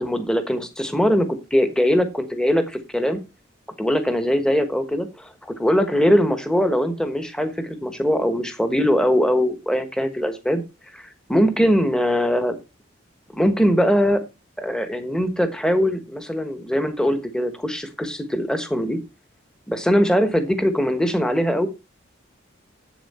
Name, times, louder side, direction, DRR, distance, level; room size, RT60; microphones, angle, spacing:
voice 1, 0.0-3.2 3.8-10.6 10.9-12.5 13.3-14.2 14.6-19.0 19.7-21.7, equal, 5° left, 8 dB, 1.1 m, -21 dB
8.1 x 7.1 x 4.2 m, 0.26 s
head